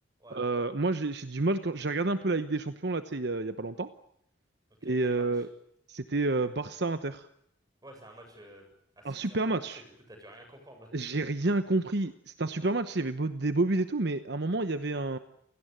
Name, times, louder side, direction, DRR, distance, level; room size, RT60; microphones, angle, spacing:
voice 1, 0.3-3.9 4.8-5.5 5.9-7.3 9.0-9.8 10.9-15.2, right 2 dB, 60° right, 10 dB, 1.0 m, -29 dB
voice 2, 4.8-5.5 7.8-8.7 9.0-9.5 10.1-10.9, right 1 dB, 20° right, 4 dB, 7.7 m, -51 dB
28.0 x 18.0 x 9.0 m, 0.73 s
head